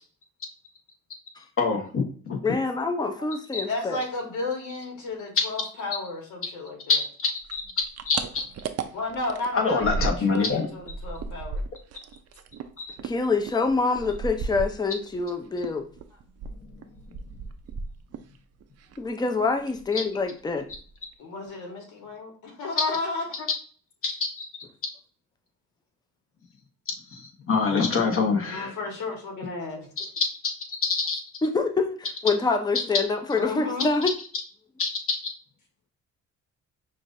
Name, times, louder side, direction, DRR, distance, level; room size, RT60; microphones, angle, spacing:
voice 1, 1.6-2.4 3.5-3.6 6.9-7.6 8.1-8.4 9.5-10.7 12.8-12.9 19.9-20.0 23.5-23.6 24.0-24.5 27.1-27.2 27.5-28.7 30.0-30.3 30.9-31.2 34.8-35.3, left 4 dB, 45° left, 1 dB, 1.2 m, -25 dB
voice 2, 2.4-4.0 13.0-15.8 19.0-20.7 31.4-34.1, left 3 dB, 15° left, 5 dB, 0.6 m, -26 dB
voice 3, 3.7-7.0 8.9-11.6 21.2-23.5 28.5-29.9 33.4-33.9, left 3 dB, 75° left, 1 dB, 1.5 m, -33 dB
sound 1, 7.4-10.5 10.8-15.3 15.6-18.4 18.6-19.3 19.6-19.9 20.2-20.3 20.6-21.1, right 4 dB, 55° right, 0.5 m, -35 dB
5.8 x 2.5 x 2.6 m, 0.43 s
cardioid pair, 90°, 30 cm